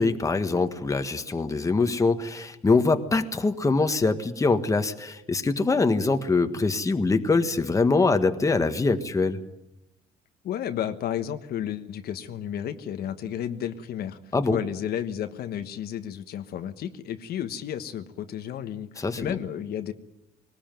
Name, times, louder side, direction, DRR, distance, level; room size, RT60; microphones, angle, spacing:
voice 1, 0.0-9.4 14.3-14.6 19.0-19.3, left 3 dB, 20° left, 7 dB, 1.5 m, -23 dB
voice 2, 10.4-14.2 14.5-19.9, left 10 dB, 65° left, 8 dB, 1.4 m, -32 dB
20.5 x 19.5 x 9.2 m, 0.88 s
cardioid pair, 110°, 17 cm